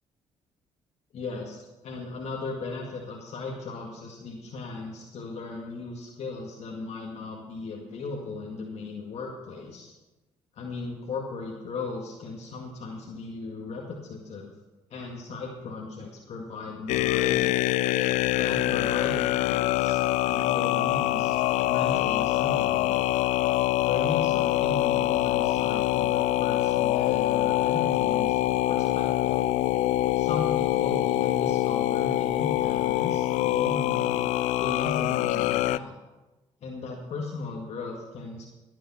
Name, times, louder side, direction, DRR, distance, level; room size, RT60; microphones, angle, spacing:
voice 1, 1.1-9.9 10.6-14.5 14.9-17.5 18.3-20.0 20.3-21.4 21.6-23.0 23.8-28.4 28.7-29.4 30.1-34.3 34.6-36.0 36.6-38.5, left 3 dB, 60° left, -1 dB, 2.0 m, -36 dB
sound 1, 16.9-35.8, left 15 dB, 80° left, 0.4 m, -25 dB
17.5 x 7.4 x 5.8 m, 1.1 s
supercardioid pair, 60°, 12 cm